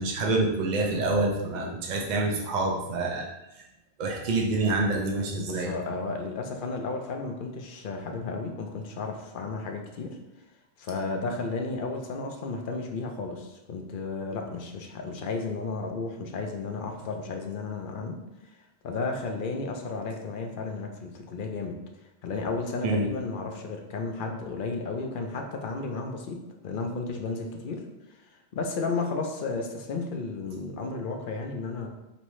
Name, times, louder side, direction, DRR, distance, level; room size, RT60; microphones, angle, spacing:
voice 1, 0.0-3.3 4.0-5.7 22.8-23.0, right 2 dB, 45° right, 0 dB, 0.7 m, -27 dB
voice 2, 5.5-10.2 10.8-18.2 18.8-21.8 22.2-27.8 28.5-31.9, left 3 dB, 55° left, 3 dB, 0.7 m, -33 dB
5.3 x 2.8 x 3.1 m, 0.96 s
omnidirectional pair, 1.1 m